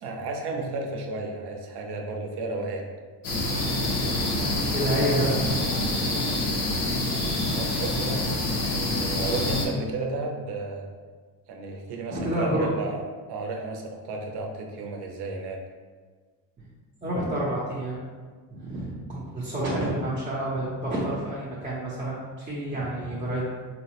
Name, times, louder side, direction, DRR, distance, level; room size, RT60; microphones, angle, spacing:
voice 1, 0.0-2.8 7.5-8.2 8.5-10.9 11.5-13.0 13.3-15.6, right 2 dB, 65° right, 2 dB, 0.6 m, -33 dB
sound 1, 3.2-9.7, left 1 dB, 80° left, 0.9 m, -26 dB
voice 2, 4.7-5.9 6.9-7.4 12.1-12.7 17.0-18.1 18.5-23.4, right 1 dB, 20° right, -8 dB, 0.6 m, -29 dB
4.2 x 2.0 x 2.9 m, 1.5 s
cardioid pair, 120°, 43 cm